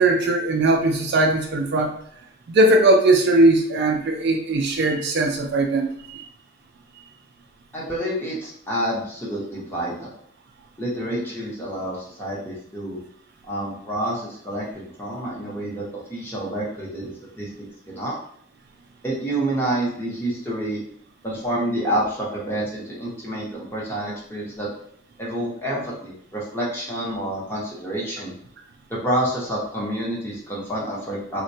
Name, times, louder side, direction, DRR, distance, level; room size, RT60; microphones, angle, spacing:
voice 1, 0.0-1.9 2.5-6.2, right 2 dB, 50° right, 2 dB, 0.4 m, -19 dB
voice 2, 7.7-10.1 10.8-13.0 13.5-17.1 17.4-17.5 17.9-18.2 19.0-20.8 21.2-24.7 25.2-28.3 28.9-31.4, right 1 dB, 10° left, -4 dB, 0.8 m, -28 dB
3.8 x 2.1 x 2.7 m, 0.65 s
head